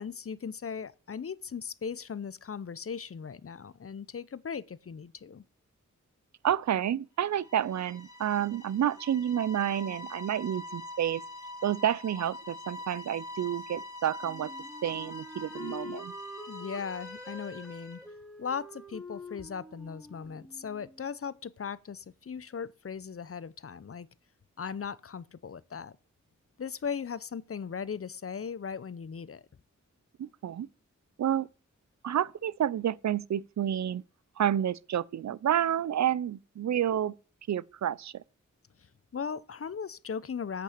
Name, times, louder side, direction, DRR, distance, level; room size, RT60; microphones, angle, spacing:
voice 1, 0.0-5.4 16.5-18.0 18.4-24.1 24.6-25.9 26.6-29.4 39.1-40.6, left 6 dB, 50° left, 0.7 m, -38 dB
voice 2, 6.4-11.2 11.6-14.5 14.8-16.1 30.2-30.7 31.2-31.5 32.0-34.0 34.4-37.1 37.5-38.2, right 10 dB, 65° right, 0.5 m, -29 dB
sound 1, 7.3-18.0, left 2 dB, 75° left, 2.4 m, -44 dB
Wind instrument woodwind instrument, 14.2-21.0, left 1 dB, ahead, 1.6 m, -45 dB
8.4 x 6.1 x 6.6 m
cardioid pair, 50°, 31 cm